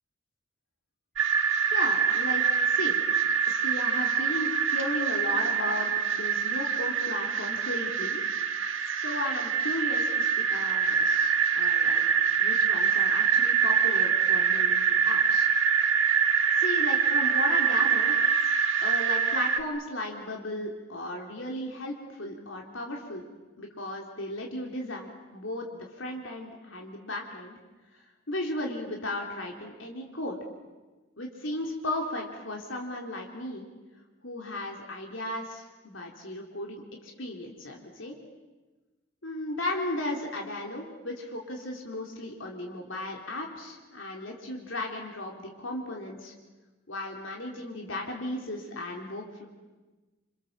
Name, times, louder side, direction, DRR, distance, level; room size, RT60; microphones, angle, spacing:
sound 1, 1.2-19.6, right 6 dB, 85° right, 1.7 m, -25 dB
voice 1, 1.7-3.0 3.5-8.2 9.0-12.0 12.4-15.5 16.6-18.2 18.8-23.3 23.6-27.6 28.3-30.4 31.2-33.7 34.2-38.2 39.2-46.3 46.9-49.5, left 1 dB, 75° left, 0 dB, 3.5 m, -35 dB
28.0 x 27.0 x 7.5 m, 1.2 s
head